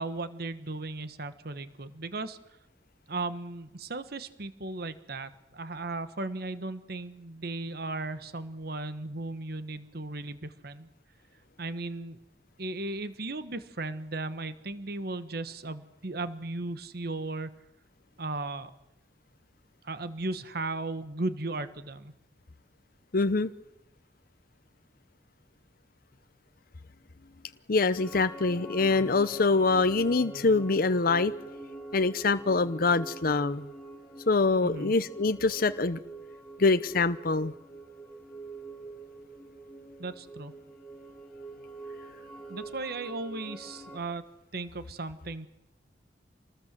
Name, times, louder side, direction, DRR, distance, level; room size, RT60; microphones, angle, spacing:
voice 1, 0.0-2.4 3.1-10.9 11.6-12.2 12.6-17.5 18.2-18.7 19.8-22.1 34.6-34.9 40.0-40.5 42.5-44.2 44.5-45.5, right 2 dB, 60° right, 12 dB, 1.3 m, -36 dB
voice 2, 23.1-23.5 27.7-31.3 31.9-33.7 34.3-36.0 36.6-37.5, left 3 dB, 55° left, 11 dB, 0.8 m, -25 dB
sound 1, 28.0-44.0, right 3 dB, 5° left, 3.8 m, -44 dB
27.0 x 19.5 x 7.6 m, 0.90 s
head